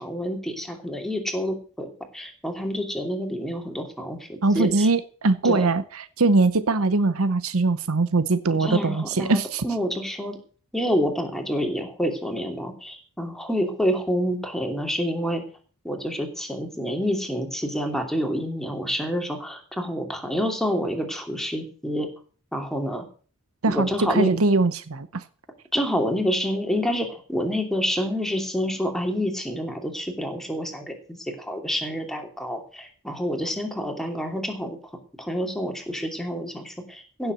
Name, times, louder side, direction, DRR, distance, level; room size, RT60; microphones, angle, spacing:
voice 1, 0.0-1.9 2.1-4.9 5.4-5.7 8.6-10.4 10.7-15.4 15.8-22.1 22.5-23.0 23.7-24.3 25.7-34.8 35.2-37.3, equal, ahead, 3 dB, 2.8 m, -28 dB
voice 2, 4.4-9.7 23.6-25.2, right 3 dB, 75° right, 14 dB, 0.8 m, -22 dB
16.0 x 7.1 x 6.8 m, 0.41 s
head